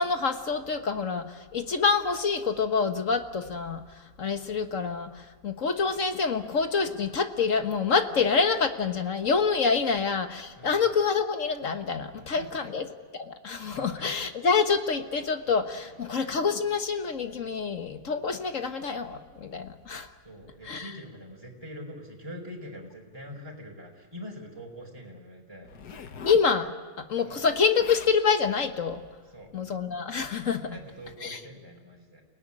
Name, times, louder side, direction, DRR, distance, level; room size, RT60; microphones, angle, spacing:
voice 1, 0.0-3.8 4.2-12.8 13.1-20.1 20.6-20.9 26.3-26.7 27.0-29.0 29.5-30.7 31.2-31.4, left 5 dB, 55° left, 7 dB, 1.6 m, -27 dB
voice 2, 12.1-12.7 13.7-14.1 15.8-16.2 20.2-26.1 27.2-27.4 29.3-29.5 30.7-32.2, equal, 15° right, 0 dB, 4.4 m, -44 dB
Zipper (clothing), 25.6-26.5 27.5-27.6 27.8-28.2 28.9-29.1, left 6 dB, 80° left, 1.8 m, -41 dB
29.0 x 18.0 x 9.9 m, 1.5 s
omnidirectional pair, 1.7 m